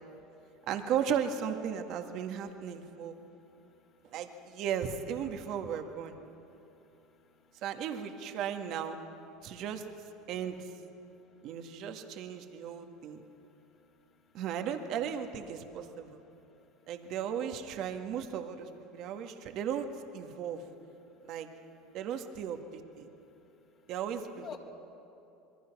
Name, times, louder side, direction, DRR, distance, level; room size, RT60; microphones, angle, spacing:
voice 1, 0.7-3.1 4.0-6.2 7.6-9.0 9.4-9.9 10.3-10.8 11.4-13.2 14.3-16.2 16.9-19.9 20.1-20.6 21.2-21.5 21.9-23.1 23.9-24.6, right 8 dB, 60° right, 5 dB, 1.8 m, -36 dB
voice 2, 3.2-3.6 6.5-7.6 24.4-24.6, left 8 dB, 45° left, 0 dB, 3.6 m, -50 dB
26.5 x 22.0 x 6.1 m, 2.9 s
supercardioid pair, 95°, 0 cm